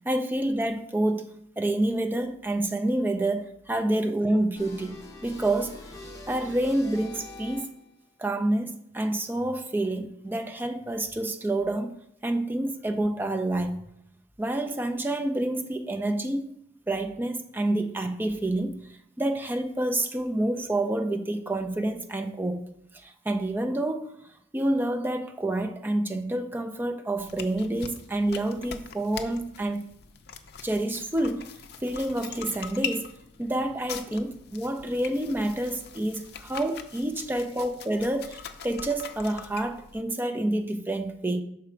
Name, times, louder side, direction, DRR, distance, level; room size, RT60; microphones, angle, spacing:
voice 1, 0.1-6.0 6.3-7.7 8.2-13.8 14.4-16.5 16.9-18.8 19.2-22.6 22.9-24.1 24.5-29.9 30.6-31.5 31.8-33.1 33.4-41.4, right 1 dB, 10° right, 0.4 m, -28 dB
sound 1, 4.6-8.0, left 2 dB, 15° left, 0.8 m, -44 dB
sound 2, 27.2-40.0, left 7 dB, 55° left, 0.4 m, -42 dB
5.9 x 4.8 x 4.4 m
head